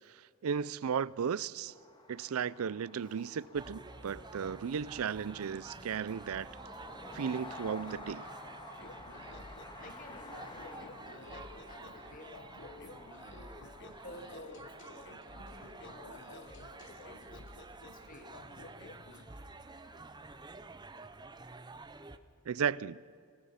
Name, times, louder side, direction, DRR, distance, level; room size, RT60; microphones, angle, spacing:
voice 1, 0.4-1.7 2.1-6.5 7.1-8.2 22.5-23.0, right 7 dB, 80° right, 0.4 m, -35 dB
sound 1, 1.7-20.5, left 2 dB, 20° left, 1.8 m, -53 dB
voice 2, 3.1-3.5 9.8-13.0 13.3-13.5 14.0-14.6 14.9-16.6 17.0-17.3 18.1-18.3, left 1 dB, 40° left, 2.4 m, -52 dB
sound 2, 3.5-22.2, right 3 dB, 20° right, 0.7 m, -50 dB
sound 3, 8.8-19.2, left 3 dB, 60° left, 1.1 m, -53 dB
27.0 x 17.5 x 5.7 m
head